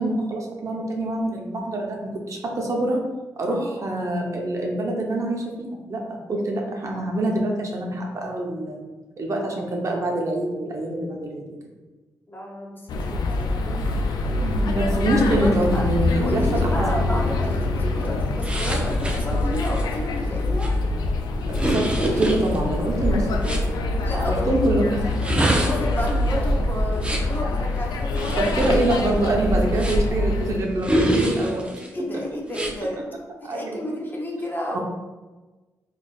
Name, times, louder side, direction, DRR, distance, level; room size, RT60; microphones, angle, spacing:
voice 1, 0.0-3.0 3.4-8.8 9.2-11.4 14.4-17.2 21.5-23.7 24.1-25.7 28.4-31.8 33.4-33.7 34.7-34.8, right 1 dB, 50° right, 0 dB, 0.8 m, -25 dB
voice 2, 3.5-3.8 12.3-14.6 15.1-15.9 16.2-20.8 24.0-24.5 25.3-28.7 31.9-33.0 33.5-34.8, equal, 30° left, -1 dB, 0.9 m, -32 dB
sound 1, 12.9-30.6, left 2 dB, 75° left, 0.4 m, -25 dB
sound 2, 18.4-23.7 25.0-27.4 28.1-30.2 30.8-31.9 32.5-32.7, right 1 dB, 15° right, 0.7 m, -25 dB
3.8 x 3.3 x 2.4 m, 1.2 s
supercardioid pair, 55°, 7 cm